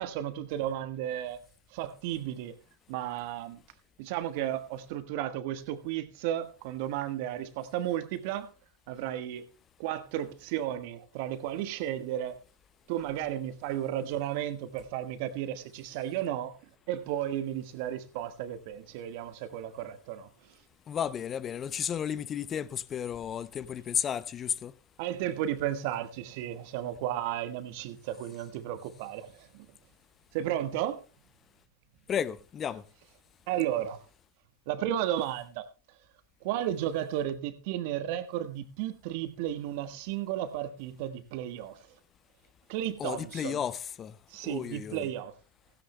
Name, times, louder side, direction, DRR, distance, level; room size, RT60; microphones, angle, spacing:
voice 1, 0.0-1.4 1.7-2.5 2.9-3.6 4.0-8.5 8.9-9.5 9.8-12.4 12.9-16.5 16.9-20.3 25.0-29.7 30.3-31.0 33.5-34.0 34.7-35.7 36.4-41.8 42.7-43.6 44.3-45.3, right 11 dB, 55° right, 1.3 m, -33 dB
voice 2, 20.9-24.7 32.1-32.8 43.0-44.2 44.4-45.1, left 8 dB, 30° left, 0.6 m, -33 dB
16.5 x 16.0 x 2.2 m
figure-of-eight pair, 95°, 0 cm